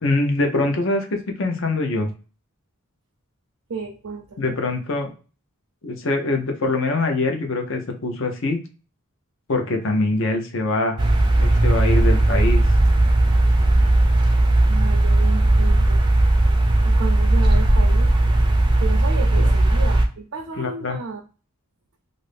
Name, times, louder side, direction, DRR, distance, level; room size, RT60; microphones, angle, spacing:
voice 1, 0.0-2.1 4.4-5.1 5.8-8.6 9.5-11.0 11.4-12.6 19.4-19.5 20.6-21.0, left 2 dB, 65° left, 4 dB, 0.6 m, -23 dB
voice 2, 3.7-4.6 14.7-16.0 16.8-18.1 18.8-21.2, right 4 dB, 75° right, 3 dB, 0.5 m, -32 dB
sound 1, 11.0-20.1, right 1 dB, 20° right, 0.4 m, -17 dB
2.6 x 2.5 x 3.3 m, 0.36 s
head